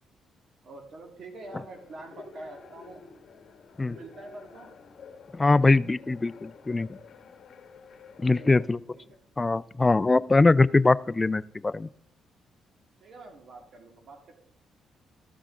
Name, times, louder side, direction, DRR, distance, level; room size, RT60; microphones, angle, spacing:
voice 1, 0.6-3.0 3.8-4.7 8.3-9.2 9.5-9.6 13.0-14.3, right 2 dB, 60° right, 3 dB, 1.8 m, -46 dB
sound 1, 1.4-8.7, left 5 dB, 60° left, 1.1 m, -50 dB
voice 2, 5.3-6.9 8.2-8.8 9.4-11.9, left 3 dB, 20° left, 18 dB, 0.3 m, -22 dB
13.5 x 6.0 x 4.9 m, 0.69 s
cardioid pair, 90°, 0 cm